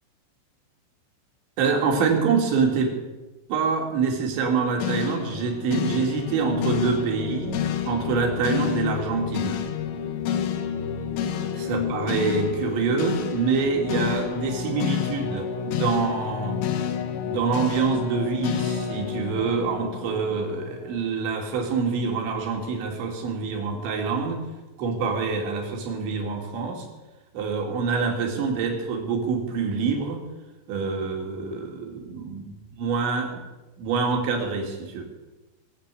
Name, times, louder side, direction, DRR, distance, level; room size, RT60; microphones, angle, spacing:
voice 1, 1.6-2.9 3.5-9.6 11.5-16.6 17.2-24.4 24.8-26.9 27.3-30.2 30.7-33.4 33.8-35.0, right 5 dB, 70° right, 2 dB, 4.6 m, -26 dB
sound 1, 4.8-21.1, left 8 dB, 80° left, 3.7 m, -29 dB
22.0 x 7.6 x 8.3 m, 1.1 s
omnidirectional pair, 5.7 m